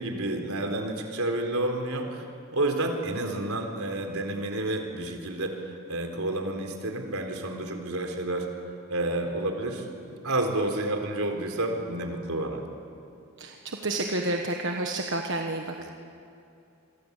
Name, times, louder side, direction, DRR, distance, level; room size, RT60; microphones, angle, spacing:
voice 1, 0.0-2.2 2.5-8.5 8.9-12.6 15.8-15.9, right 1 dB, 80° right, 4 dB, 4.0 m, -30 dB
voice 2, 13.4-15.7, right 2 dB, 55° right, 2 dB, 1.4 m, -30 dB
28.5 x 23.0 x 8.3 m, 2.7 s
head